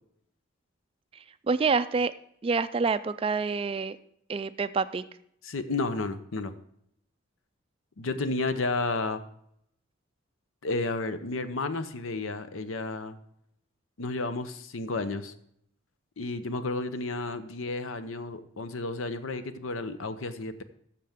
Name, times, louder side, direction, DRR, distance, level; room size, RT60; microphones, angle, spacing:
voice 1, 1.5-2.1 2.4-4.0 4.3-5.0, right 4 dB, 25° right, 13 dB, 0.3 m, -27 dB
voice 2, 5.4-6.5 8.0-9.2 10.6-13.2 14.0-15.3 16.2-20.5, left 3 dB, 80° left, 11 dB, 0.7 m, -32 dB
13.0 x 6.7 x 3.6 m, 0.72 s
head